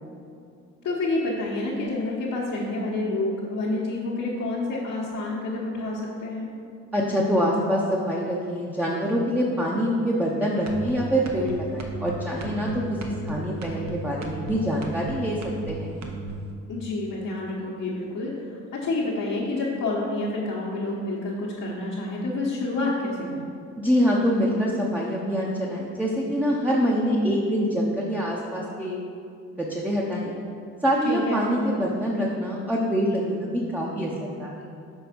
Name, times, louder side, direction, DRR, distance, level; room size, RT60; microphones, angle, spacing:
voice 1, 0.8-6.5 16.7-23.5 31.0-31.5, left 2 dB, 70° left, -6 dB, 1.2 m, -28 dB
voice 2, 6.9-15.4 15.7-15.9 23.8-29.0 29.6-30.3 30.8-34.7, equal, 5° right, -3 dB, 0.7 m, -25 dB
sound 1, 10.7-10.9 11.3-11.5 11.8-12.1 12.4-12.7 13.0-13.3 13.6-13.9 14.2-14.5 14.8-15.1 15.4-15.7 16.0-16.3, right 3 dB, 65° right, 0.9 m, -34 dB
6.3 x 4.0 x 5.1 m, 2.5 s
cardioid pair, 90°, 30 cm